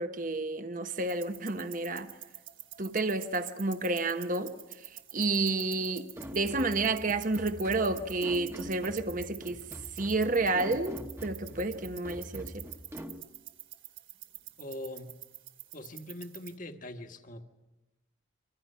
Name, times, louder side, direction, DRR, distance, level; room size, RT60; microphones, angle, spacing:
voice 1, 0.0-2.1 2.8-4.6 5.1-9.7 10.0-12.7, right 3 dB, 40° right, 1.0 m, -30 dB
sound 1, 1.0-16.5, right 13 dB, 75° right, 2.5 m, -49 dB
sound 2, 6.2-13.2, equal, 15° right, 1.1 m, -44 dB
voice 2, 14.6-15.1 15.7-17.4, left 1 dB, 40° left, 1.5 m, -42 dB
27.0 x 25.5 x 5.6 m
head